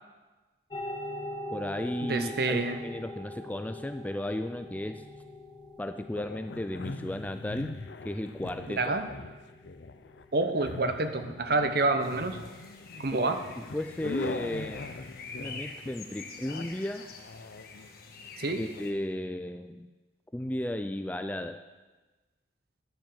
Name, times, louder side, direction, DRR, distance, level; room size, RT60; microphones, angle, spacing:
sound 1, 0.7-15.5, left 1 dB, 25° left, 0.9 m, -44 dB
voice 1, 1.5-5.0 5.8-7.7 8.1-8.9 13.2-14.9 15.4-17.1 18.6-19.9 20.3-21.6, left 1 dB, 10° left, 8 dB, 0.3 m, -34 dB
voice 2, 2.0-2.8 8.7-9.1 10.3-12.4 13.0-13.4 18.4-18.6, right 3 dB, 55° right, 8 dB, 0.9 m, -28 dB
sound 2, 6.1-18.8, left 3 dB, 70° left, 0.6 m, -42 dB
sound 3, 12.0-18.9, left 4 dB, 50° left, 1.4 m, -46 dB
10.5 x 7.0 x 7.6 m, 1.2 s
head